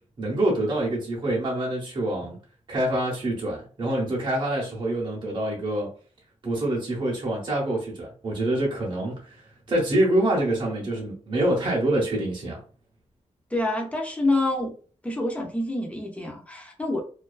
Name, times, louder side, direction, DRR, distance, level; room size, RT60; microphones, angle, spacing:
voice 1, 0.2-2.4 2.7-5.9 6.4-12.6, right 1 dB, 40° right, 0.7 m, -26 dB
voice 2, 13.5-14.8 15.0-17.0, left 2 dB, 10° left, 0.5 m, -27 dB
2.3 x 2.3 x 2.3 m
wide cardioid pair, 170°, 12 cm